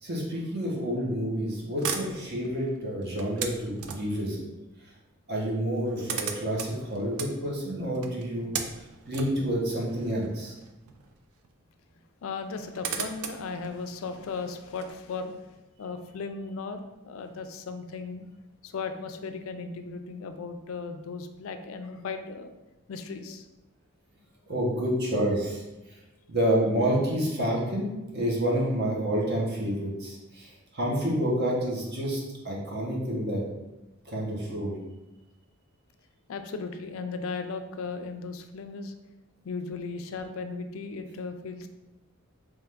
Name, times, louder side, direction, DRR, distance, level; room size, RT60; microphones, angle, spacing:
voice 1, 0.0-4.4 5.3-8.5 9.1-10.5 24.5-25.6 26.3-33.4 34.0-34.8, equal, 50° right, -3 dB, 1.0 m, -29 dB
sound 1, 1.8-4.3 5.3-5.4 5.6-11.1 11.4-11.5 12.4-14.9, right 6 dB, 80° right, 0.4 m, -37 dB
voice 2, 12.2-15.3 15.8-18.3 18.6-22.5 22.9-23.5 36.3-38.9 39.4-41.7, left 4 dB, 70° left, 7 dB, 0.4 m, -36 dB
3.5 x 3.2 x 3.4 m, 1.0 s
head